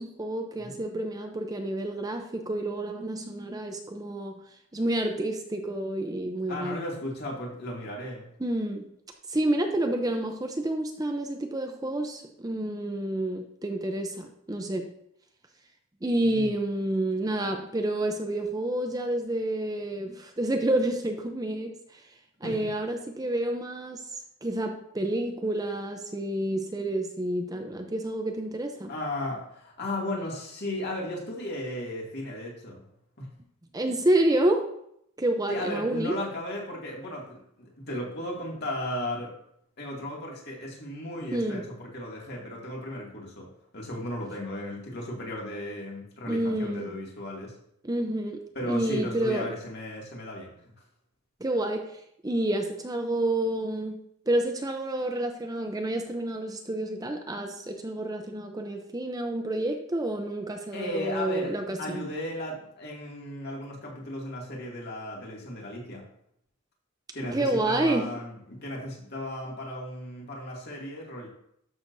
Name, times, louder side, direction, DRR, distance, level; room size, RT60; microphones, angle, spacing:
voice 1, 0.0-4.4 4.7-6.8 8.4-8.9 9.3-14.9 16.0-22.0 22.4-24.1 24.4-28.9 33.7-34.7 35.2-36.1 41.3-41.7 46.3-46.9 47.8-48.4 48.7-49.5 51.4-54.0 54.3-62.0 67.3-68.1, right 1 dB, 15° right, 4 dB, 0.6 m, -29 dB
voice 2, 0.5-1.0 6.5-8.3 16.2-16.5 22.4-22.6 28.9-32.8 33.2-33.3 35.5-39.3 39.8-47.5 48.5-50.5 60.7-66.0 67.1-71.3, left 1 dB, 50° left, -3 dB, 2.3 m, -35 dB
12.0 x 6.4 x 2.7 m, 0.73 s
head